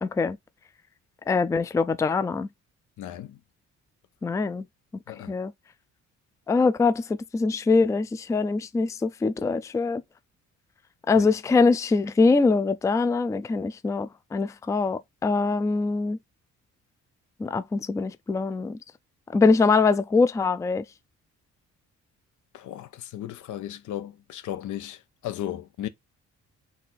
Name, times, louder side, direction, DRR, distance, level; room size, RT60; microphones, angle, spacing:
voice 1, 0.0-0.4 1.3-2.5 4.2-4.7 5.3-5.5 6.5-7.0 7.3-10.0 11.1-16.2 17.4-18.8 19.3-20.8, left 4 dB, 10° left, 0.3 m, -23 dB
voice 2, 3.0-3.4 5.1-5.3 11.1-11.3 22.5-25.9, left 12 dB, 75° left, 0.7 m, -35 dB
4.1 x 2.6 x 3.9 m
cardioid pair, 90°, 30 cm